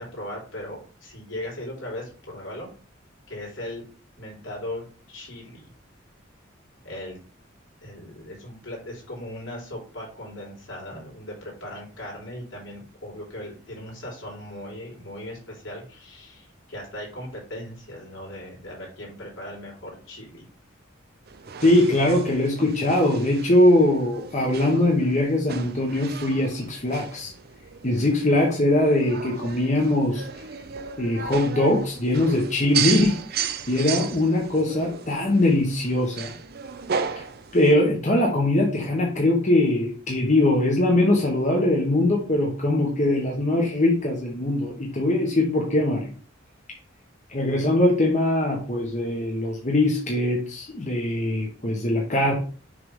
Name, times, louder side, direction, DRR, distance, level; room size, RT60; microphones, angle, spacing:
voice 1, 0.0-2.7 3.3-3.9 4.2-5.7 6.8-7.2 7.8-20.5, left 1 dB, 75° left, -3 dB, 3.8 m, -38 dB
sound 1, 21.3-37.7, right 7 dB, 50° right, 0.6 m, -34 dB
voice 2, 21.6-27.3 27.8-30.2 31.0-36.3 37.5-46.1 47.3-52.3, left 1 dB, 40° left, -1 dB, 1.3 m, -21 dB
6.7 x 3.5 x 5.6 m, 0.40 s
head